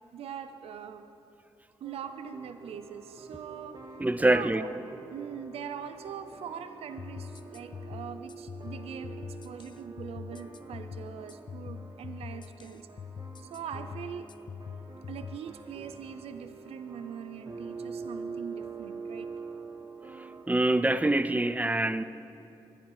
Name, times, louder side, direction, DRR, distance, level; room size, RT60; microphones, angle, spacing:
voice 1, 0.1-1.1 1.8-3.8 4.3-4.7 5.1-12.9 13.4-14.3 15.1-19.3, right 8 dB, 80° right, 0.7 m, -42 dB
sound 1, 1.8-20.4, right 4 dB, 45° right, 1.9 m, -45 dB
voice 2, 4.0-4.7 20.5-22.0, right 1 dB, 15° right, 0.7 m, -25 dB
sound 2, 7.0-15.4, left 6 dB, 50° left, 0.5 m, -43 dB
23.5 x 10.5 x 4.9 m
supercardioid pair, 55°, 10 cm